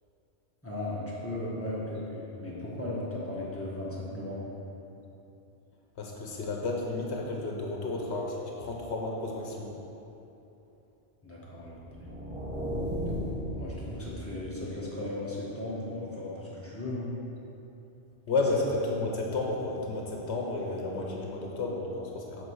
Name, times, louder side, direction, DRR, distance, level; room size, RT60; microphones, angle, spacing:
voice 1, 0.6-4.5 11.2-12.0 13.6-17.1, left 1 dB, 10° left, -7 dB, 1.5 m, -36 dB
voice 2, 6.0-9.8 18.3-22.4, left 2 dB, 75° left, -1 dB, 1.2 m, -32 dB
sound 1, 11.7-14.7, equal, 40° right, 2.0 m, -35 dB
7.8 x 4.3 x 6.5 m, 2.9 s
omnidirectional pair, 1.1 m